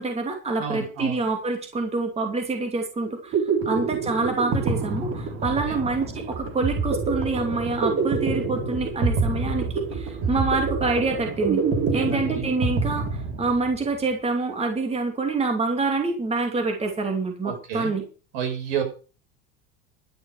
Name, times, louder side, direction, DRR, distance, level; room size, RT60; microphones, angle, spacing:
voice 1, 0.0-11.6 11.9-18.0, right 3 dB, 20° right, 4 dB, 2.7 m, -26 dB
voice 2, 0.6-1.3 3.6-3.9 5.4-5.8 10.2-10.4 11.9-12.5 17.4-17.9 18.3-18.8, right 8 dB, 75° right, 3 dB, 6.1 m, -32 dB
sound 1, 3.0-13.8, right 4 dB, 45° right, 3.4 m, -27 dB
12.0 x 6.6 x 7.8 m, 0.37 s
supercardioid pair, 115°, 31 cm